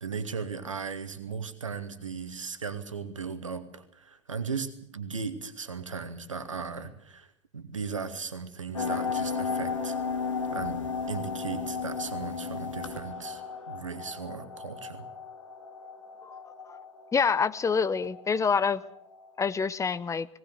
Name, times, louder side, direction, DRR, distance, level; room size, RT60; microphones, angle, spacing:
voice 1, 0.0-10.0 10.5-15.0, right 5 dB, 85° right, 10 dB, 1.9 m, -37 dB
sound 1, 8.7-19.5, left 5 dB, 80° left, 2.3 m, -35 dB
voice 2, 17.1-18.8 19.4-20.3, left 5 dB, 20° left, 16 dB, 0.8 m, -26 dB
19.0 x 19.0 x 8.0 m, 0.68 s
figure-of-eight pair, 80°, 16 cm